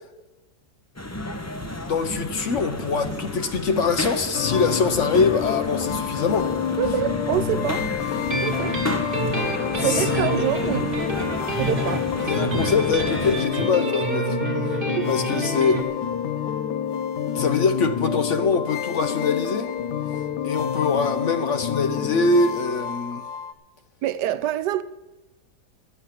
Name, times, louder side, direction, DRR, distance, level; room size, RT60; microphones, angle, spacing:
sound 1, 1.0-13.4, left 1 dB, 15° left, 0.5 m, -32 dB
voice 1, 1.9-6.5 9.7-10.3 12.3-14.4 14.7-14.8 15.1-15.8 17.3-19.7 20.4-23.2, left 4 dB, 55° left, 1.0 m, -23 dB
sound 2, 4.3-23.5, left 9 dB, 80° left, 1.3 m, -28 dB
voice 2, 6.8-7.9 8.4-8.8 9.8-10.9 11.6-12.1 14.8-15.1 24.0-24.8, right 12 dB, 90° right, 1.3 m, -26 dB
sound 3, 8.3-15.8, right 3 dB, 35° right, 1.7 m, -29 dB
13.0 x 8.4 x 7.5 m
omnidirectional pair, 1.8 m